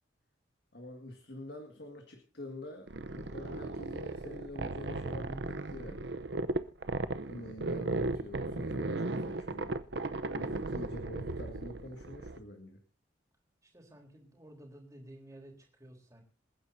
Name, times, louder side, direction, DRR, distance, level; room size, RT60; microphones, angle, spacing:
voice 1, 0.7-6.2 7.3-9.8 10.4-12.8, left 1 dB, 55° left, 4 dB, 2.0 m, -46 dB
sound 1, 2.9-12.4, right 2 dB, 60° right, 0.8 m, -36 dB
voice 2, 13.6-16.2, right 1 dB, 15° right, 1 dB, 3.9 m, -53 dB
27.5 x 10.0 x 2.7 m, 0.33 s
head